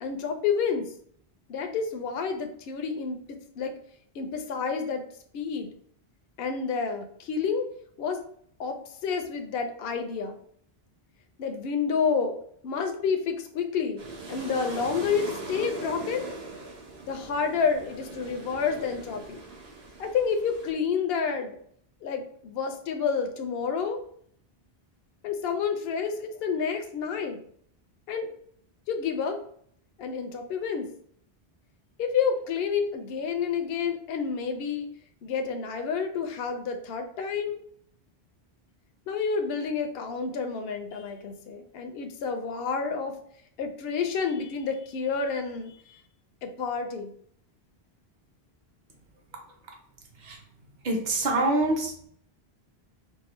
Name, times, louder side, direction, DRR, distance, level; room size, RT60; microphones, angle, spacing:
voice 1, 0.0-0.9 1.5-3.2 3.6-3.7 4.1-5.0 5.3-5.7 6.4-7.7 8.0-8.2 8.6-10.4 11.4-12.4 12.6-14.0 14.3-16.3 17.1-19.4 20.0-21.6 22.0-24.0 25.2-27.4 28.1-28.3 28.9-29.4 30.0-30.9 32.0-34.9 35.2-37.6 39.1-43.1 43.6-46.0 46.4-47.1, left 6 dB, 70° left, 5 dB, 0.8 m, -29 dB
sound 1, 14.0-20.7, right 3 dB, 75° right, 1.2 m, -40 dB
voice 2, 50.8-52.1, right 2 dB, 50° right, 1 dB, 0.9 m, -26 dB
4.8 x 2.3 x 3.0 m, 0.63 s
omnidirectional pair, 1.1 m